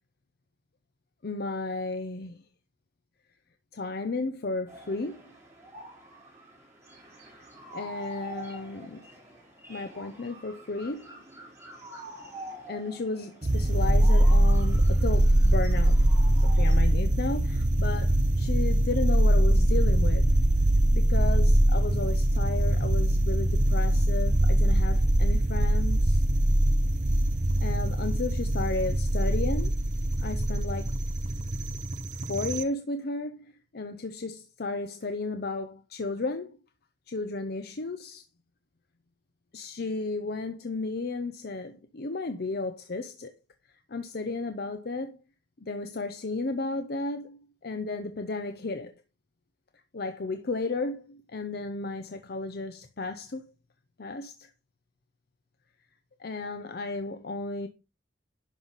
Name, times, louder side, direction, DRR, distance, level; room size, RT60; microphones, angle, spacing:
voice 1, 1.2-2.4 3.7-5.3 7.7-9.2 9.7-11.2 12.7-16.1 16.4-20.3 20.9-26.2 27.6-29.8 30.2-31.0 32.3-36.6 37.1-38.2 39.5-43.3 43.9-45.2 45.6-48.9 49.9-53.4 54.0-54.5 56.2-57.7, left 3 dB, 60° left, 0.7 m, -34 dB
sound 1, 4.7-16.7, right 1 dB, 15° right, 4.7 m, -46 dB
sound 2, 13.4-32.6, right 1 dB, 45° right, 0.8 m, -23 dB
11.0 x 5.7 x 4.0 m
head